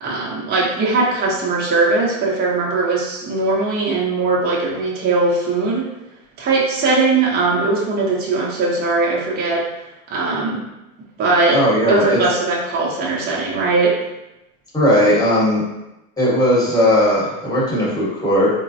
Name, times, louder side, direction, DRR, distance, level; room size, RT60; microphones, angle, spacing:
voice 1, 0.0-5.9 6.4-9.6 10.1-10.6 11.2-11.6 11.9-13.9, right 3 dB, 20° right, -5 dB, 0.6 m, -19 dB
voice 2, 11.5-12.2 14.7-15.6 16.2-18.5, equal, 10° left, -7 dB, 1.0 m, -17 dB
3.6 x 2.0 x 2.6 m, 0.92 s
supercardioid pair, 120°, 45 cm